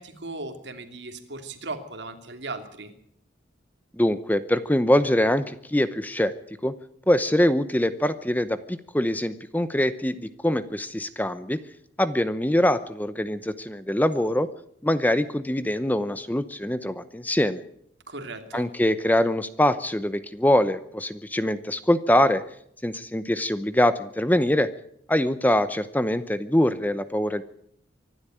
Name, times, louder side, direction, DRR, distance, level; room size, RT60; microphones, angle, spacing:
voice 1, 0.0-2.9 18.1-18.7, right 3 dB, 65° right, 6 dB, 2.9 m, -37 dB
voice 2, 4.0-6.3 6.6-6.7 7.1-11.6 12.0-14.5 14.8-17.6 18.5-22.4 22.8-24.7 25.1-27.4, left 1 dB, 10° left, 13 dB, 0.7 m, -23 dB
25.0 x 12.0 x 9.1 m, 0.70 s
head